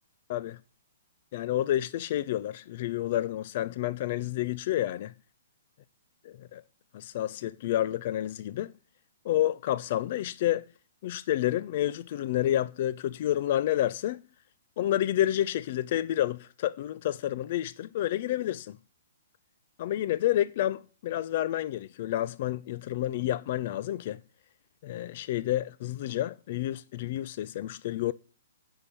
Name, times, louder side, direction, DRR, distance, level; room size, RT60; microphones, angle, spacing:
voice 1, 1.3-5.1 6.2-6.6 6.9-8.7 9.2-10.7 11.0-14.2 14.8-18.8 19.8-24.2 24.8-28.1, left 13 dB, 50° left, 0.4 m, -29 dB
9.8 x 5.7 x 8.2 m
hypercardioid pair, 135°, 0 cm